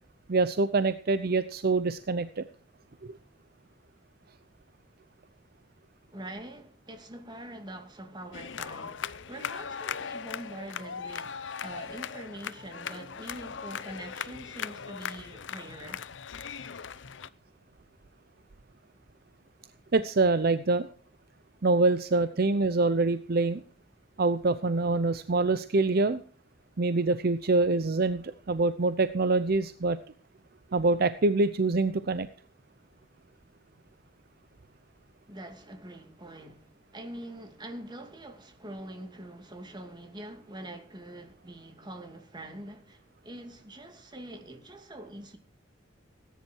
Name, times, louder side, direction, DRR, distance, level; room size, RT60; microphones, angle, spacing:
voice 1, 0.3-2.4 19.9-20.9 21.6-23.6 24.2-26.2 26.8-30.0 30.7-32.3, right 3 dB, 55° right, 0.7 m, -25 dB
voice 2, 6.1-16.0 35.3-45.4, right 1 dB, 25° right, 2.6 m, -44 dB
sound 1, 8.3-17.3, left 7 dB, 75° left, 0.7 m, -39 dB
18.0 x 10.5 x 4.7 m
head